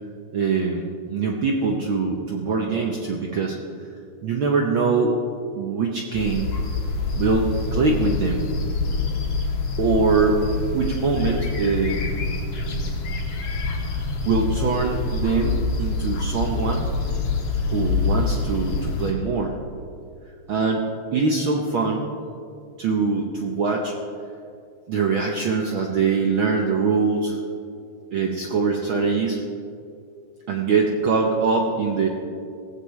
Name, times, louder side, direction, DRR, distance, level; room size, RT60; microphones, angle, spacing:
voice 1, 0.3-3.6 4.2-5.2 5.6-6.5 7.1-8.4 9.8-10.5 10.7-12.2 13.9-16.9 17.7-19.6 20.5-22.1 22.8-23.9 24.9-27.4 28.1-29.4 30.5-32.1, right 4 dB, 70° right, 1 dB, 1.2 m, -23 dB
sound 1, 6.1-19.1, left 3 dB, 75° left, 3.0 m, -26 dB
17.5 x 15.5 x 3.2 m, 2.4 s
omnidirectional pair, 3.4 m